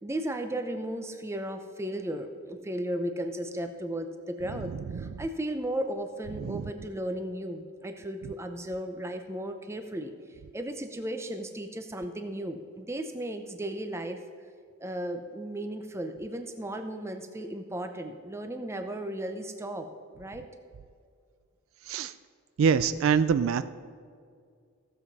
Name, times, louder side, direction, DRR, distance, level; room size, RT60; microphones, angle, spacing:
voice 1, 0.0-10.1 10.5-14.2 14.8-19.9 20.1-20.5, right 1 dB, 10° right, 7 dB, 0.6 m, -35 dB
voice 2, 22.6-23.6, right 6 dB, 65° right, 13 dB, 0.3 m, -24 dB
16.0 x 7.2 x 4.1 m, 2.2 s
head